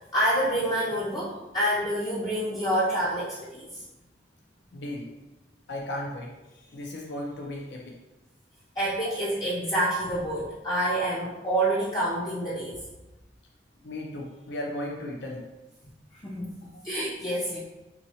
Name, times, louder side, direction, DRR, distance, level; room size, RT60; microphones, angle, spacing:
voice 1, 0.1-3.8 8.8-12.8 16.2-17.6, right 1 dB, 25° left, -7 dB, 0.5 m, -27 dB
voice 2, 4.7-5.1 5.7-8.0 13.8-15.5 16.7-16.8, left 1 dB, 70° left, 0 dB, 0.5 m, -36 dB
4.2 x 2.7 x 2.8 m, 1.0 s
head